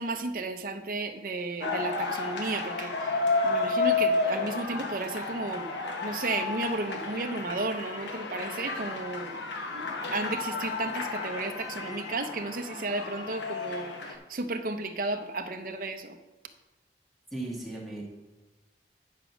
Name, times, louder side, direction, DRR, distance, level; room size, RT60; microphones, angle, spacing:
voice 1, 0.0-3.2 3.4-5.7 6.0-9.4 9.7-16.2, right 2 dB, 50° right, 6 dB, 0.7 m, -33 dB
sound 1, 1.6-14.1, left 3 dB, 80° left, 1.1 m, -32 dB
voice 2, 17.3-18.0, right 2 dB, ahead, -4 dB, 1.9 m, -36 dB
9.6 x 5.1 x 6.0 m, 1.1 s
head